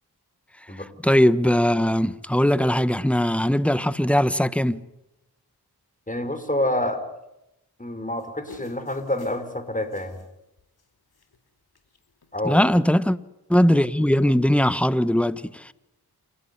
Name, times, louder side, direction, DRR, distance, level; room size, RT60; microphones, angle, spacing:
voice 1, 1.0-4.8 12.4-13.2 13.5-15.7, equal, 5° left, 1.4 m, -20 dB
voice 2, 6.1-7.0 7.8-10.2 12.3-12.7, left 1 dB, 20° left, 5.3 m, -27 dB
sound 1, 8.2-10.3 10.6-10.8 11.1-11.5 11.7-12.3 13.0-13.1, left 5 dB, 70° left, 3.8 m, -48 dB
28.0 x 16.5 x 10.0 m
cardioid pair, 40°, 39 cm